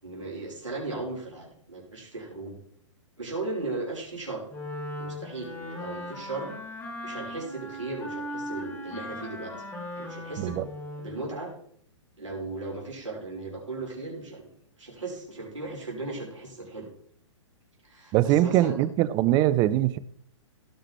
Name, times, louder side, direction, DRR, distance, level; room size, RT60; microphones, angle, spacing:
voice 1, 0.0-2.6 3.2-4.4 5.0-6.5 7.0-9.7 9.9-10.6 11.0-11.5 12.2-14.5 14.8-16.9 17.8-18.8, right 3 dB, 75° right, 5.2 m, -36 dB
Wind instrument woodwind instrument, 4.5-11.2, left 1 dB, 15° left, 3.3 m, -38 dB
voice 2, 18.1-20.0, right 14 dB, 25° right, 0.5 m, -22 dB
17.5 x 5.8 x 4.5 m
figure-of-eight pair, 115°, 16 cm